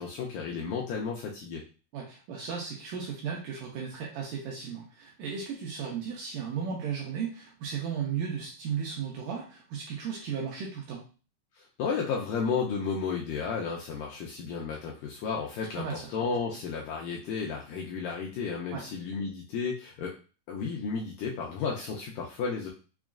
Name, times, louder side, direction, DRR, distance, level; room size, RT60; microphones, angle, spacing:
voice 1, 0.0-1.6 11.6-20.2 20.5-22.7, left 5 dB, 80° left, -2 dB, 1.9 m, -33 dB
voice 2, 1.9-11.0 15.8-16.1 16.5-16.6 18.7-18.8, right 7 dB, 80° right, -2 dB, 1.9 m, -35 dB
6.0 x 2.3 x 2.4 m, 0.36 s
omnidirectional pair, 4.3 m